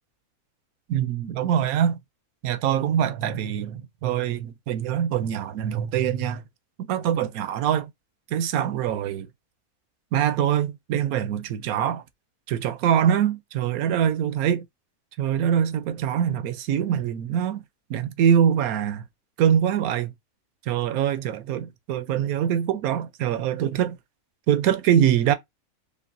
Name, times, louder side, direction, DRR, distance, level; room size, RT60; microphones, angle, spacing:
voice 1, 0.9-2.0 2.4-6.4 6.8-7.9 8.3-9.3 10.1-12.0 12.5-14.7 15.2-17.6 17.9-19.0 19.4-20.1 20.7-24.0 24.5-25.3, right 9 dB, 75° right, 1.0 m, -24 dB
5.2 x 2.4 x 2.5 m
omnidirectional pair, 1.6 m